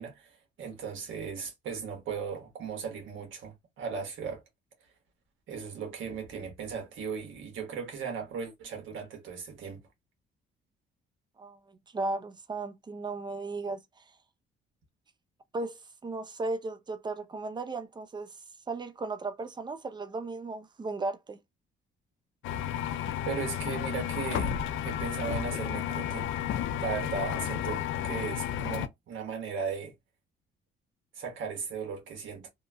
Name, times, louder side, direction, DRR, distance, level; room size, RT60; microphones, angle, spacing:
voice 1, 0.0-4.4 5.5-9.8 23.2-24.5 24.8-26.3 26.7-29.9 31.1-32.5, right 6 dB, 75° right, 1.3 m, -37 dB
voice 2, 11.4-14.0 15.5-18.3 18.7-21.4, right 3 dB, 20° right, 0.5 m, -36 dB
sound 1, 22.4-28.9, left 10 dB, 75° left, 0.4 m, -32 dB
2.9 x 2.5 x 2.2 m
cardioid pair, 90°, 20 cm